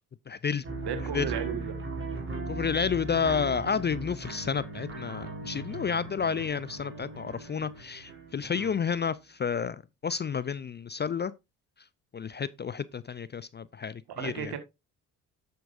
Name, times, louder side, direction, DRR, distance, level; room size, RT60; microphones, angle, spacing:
voice 1, 0.3-0.6 1.1-1.3 2.5-9.8 10.0-11.3 12.1-14.5, left 6 dB, 25° left, 0.5 m, -30 dB
sound 1, 0.6-9.0, right 3 dB, 30° right, 4.0 m, -38 dB
voice 2, 0.9-1.8 8.5-8.7 14.2-14.6, right 8 dB, 60° right, 1.7 m, -35 dB
10.0 x 6.9 x 2.6 m
hypercardioid pair, 50°, 44 cm